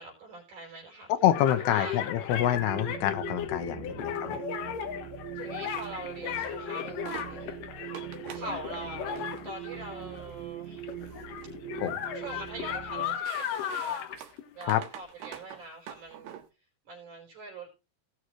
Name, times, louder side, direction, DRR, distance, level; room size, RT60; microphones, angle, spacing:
voice 1, 0.0-1.1 1.6-2.0 4.0-4.5 5.4-7.6 7.8-8.0 8.2-10.9 12.1-16.4 16.9-17.7, right 3 dB, 50° right, -1 dB, 5.5 m, -43 dB
voice 2, 1.1-4.4 11.8-12.0 14.7-14.8, left 12 dB, 90° left, 8 dB, 3.1 m, -27 dB
sound 1, 1.2-10.4 10.7-15.0, left 9 dB, 65° left, 2.5 m, -36 dB
sound 2, 2.3-13.2, right 13 dB, 75° right, 2.5 m, -42 dB
sound 3, 5.6-5.9 6.4-6.5 6.9-7.3 7.9-8.5 9.1-9.4 10.2-10.4 10.8-11.5 11.8-12.5 12.9-16.5, right 10 dB, 90° right, 3.5 m, -46 dB
18.5 x 6.5 x 3.1 m, 0.28 s
omnidirectional pair, 4.5 m